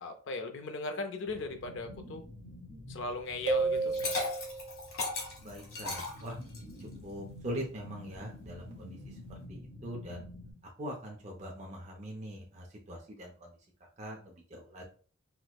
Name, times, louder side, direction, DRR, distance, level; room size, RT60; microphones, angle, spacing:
voice 1, 0.0-2.2 2.9-4.0, left 3 dB, 55° left, 6 dB, 0.4 m, -38 dB
sound 1, 1.3-10.5, left 1 dB, 40° left, 0.8 m, -49 dB
sound 2, 3.5-5.0, right 4 dB, 55° right, 0.8 m, -31 dB
Liquid, 3.7-6.8, left 3 dB, 85° left, 1.2 m, -36 dB
voice 2, 5.4-6.4 6.8-9.2 9.5-10.3 10.8-13.5 14.0-14.8, equal, 30° right, -1 dB, 0.4 m, -42 dB
4.3 x 2.0 x 2.3 m, 0.41 s
head